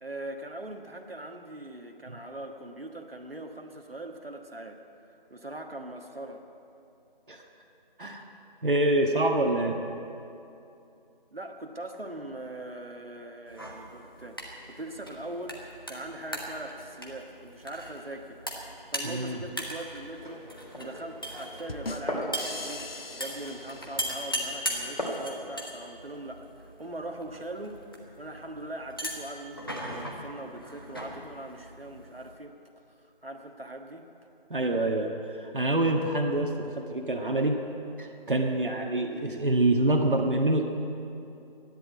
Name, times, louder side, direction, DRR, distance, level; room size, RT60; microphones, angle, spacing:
voice 1, 0.0-4.8 5.3-6.4 11.3-14.4 14.7-18.4 18.9-20.5 20.8-22.9 23.2-27.8 28.2-32.6 33.2-34.1, right 1 dB, 80° right, 3 dB, 1.5 m, -41 dB
voice 2, 8.6-9.8 19.0-19.4 34.5-37.6 38.0-40.6, right 1 dB, 60° right, 2 dB, 1.5 m, -26 dB
sound 1, 13.5-32.3, equal, 25° left, 1.1 m, -39 dB
Glass, 20.1-25.3, left 1 dB, 50° left, 2.9 m, -39 dB
sound 2, 21.7-24.5, left 2 dB, 80° left, 1.0 m, -41 dB
13.0 x 10.5 x 8.6 m, 2.7 s
figure-of-eight pair, 175°, 29 cm